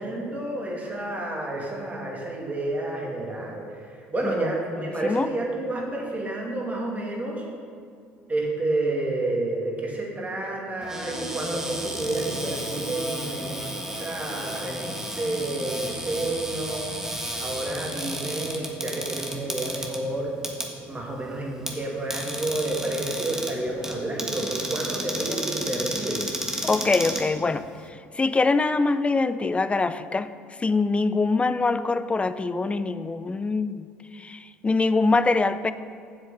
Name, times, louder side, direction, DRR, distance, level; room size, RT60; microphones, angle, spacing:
voice 1, 0.0-7.4 8.3-13.7 14.0-16.9 17.4-20.3 20.8-26.2, right 2 dB, 25° right, -1 dB, 2.4 m, -30 dB
Cupboard open or close, 10.8-27.9, right 1 dB, 10° right, 1.6 m, -33 dB
voice 2, 26.6-30.3 30.6-33.9 34.1-35.7, left 3 dB, 20° left, 13 dB, 0.5 m, -24 dB
7.9 x 7.2 x 5.7 m, 2.3 s
hypercardioid pair, 65°, 6 cm